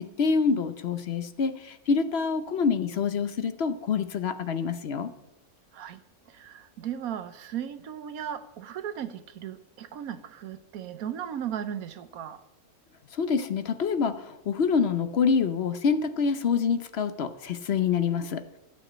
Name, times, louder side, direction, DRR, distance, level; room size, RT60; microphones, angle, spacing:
voice 1, 0.0-5.1 13.1-18.6, left 5 dB, 55° left, 0.9 m, -26 dB
voice 2, 6.3-12.4, right 9 dB, 85° right, 1.3 m, -36 dB
12.0 x 5.9 x 8.4 m
omnidirectional pair, 1.5 m